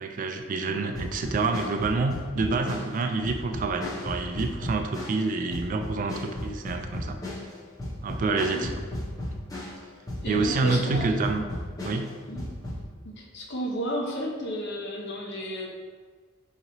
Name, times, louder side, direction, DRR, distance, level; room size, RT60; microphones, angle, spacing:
voice 1, 0.0-7.2 8.0-8.7 10.3-11.4 11.8-12.1, right 3 dB, 40° right, 5 dB, 0.3 m, -27 dB
sound 1, 0.9-9.8 10.1-12.8, left 1 dB, 20° left, 0.7 m, -35 dB
voice 2, 8.3-8.7 10.2-11.1 12.3-12.4 13.0-15.7, equal, 55° left, 0 dB, 0.6 m, -33 dB
4.9 x 2.9 x 2.7 m, 1.5 s
head